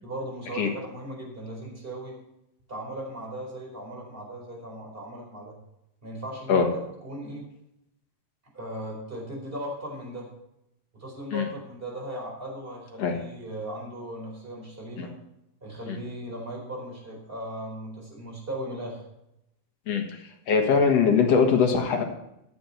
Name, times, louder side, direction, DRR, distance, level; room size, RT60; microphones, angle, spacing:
voice 1, 0.0-2.1 2.7-5.5 6.0-6.7 7.0-7.5 8.5-10.3 10.9-15.1 15.6-19.0, right 1 dB, 15° right, -1 dB, 4.4 m, -37 dB
voice 2, 20.5-22.0, left 6 dB, 55° left, 3 dB, 2.3 m, -21 dB
15.0 x 8.7 x 4.4 m, 0.82 s
omnidirectional pair, 3.9 m